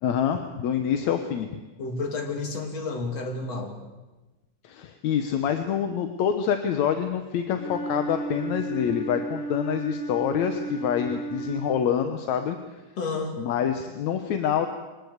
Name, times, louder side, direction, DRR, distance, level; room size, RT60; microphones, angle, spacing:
voice 1, 0.0-1.5 4.6-12.6 13.4-14.7, left 8 dB, 65° left, 7 dB, 2.1 m, -26 dB
voice 2, 1.8-3.8 13.0-13.4, left 3 dB, 50° left, 3 dB, 3.7 m, -31 dB
Wind instrument woodwind instrument, 7.5-12.0, right 3 dB, 80° left, 7.1 m, -34 dB
22.5 x 19.0 x 8.1 m, 1.1 s
omnidirectional pair, 3.8 m